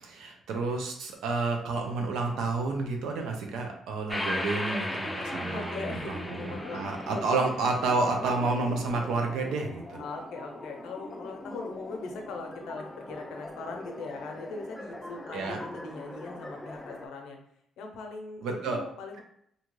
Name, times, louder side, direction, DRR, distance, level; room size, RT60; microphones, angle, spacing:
voice 1, 0.0-10.0 15.3-15.6 18.4-18.8, right 3 dB, 85° right, 2 dB, 0.6 m, -30 dB
sound 1, 4.1-17.1, left 1 dB, 10° left, 0.4 m, -39 dB
voice 2, 5.4-6.8 7.1-7.3 10.0-17.4 17.8-19.2, left 3 dB, 85° left, 3 dB, 0.6 m, -40 dB
2.7 x 2.3 x 3.0 m, 0.69 s
cardioid pair, 90°, 0 cm